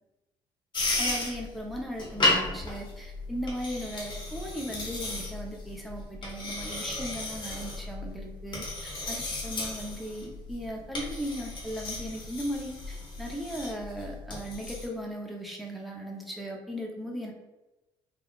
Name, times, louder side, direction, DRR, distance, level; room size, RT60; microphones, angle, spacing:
sound 1, 0.7-14.9, left 2 dB, 40° left, 1.0 m, -34 dB
voice 1, 1.0-17.3, equal, ahead, -1 dB, 0.6 m, -37 dB
3.5 x 2.3 x 2.3 m, 1.0 s
supercardioid pair, 80°, 12 cm